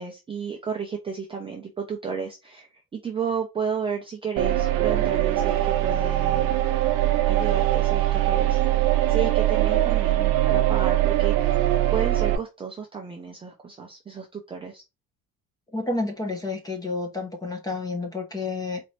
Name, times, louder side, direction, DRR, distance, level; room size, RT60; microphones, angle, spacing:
voice 1, 0.0-6.5 7.3-8.6 9.1-14.8, right 6 dB, 15° right, 0.4 m, -32 dB
sound 1, 4.4-12.4, right 14 dB, 70° right, 0.6 m, -22 dB
voice 2, 15.7-18.8, left 3 dB, 10° left, 0.7 m, -30 dB
4.1 x 2.5 x 3.1 m
cardioid pair, 170°, 36 cm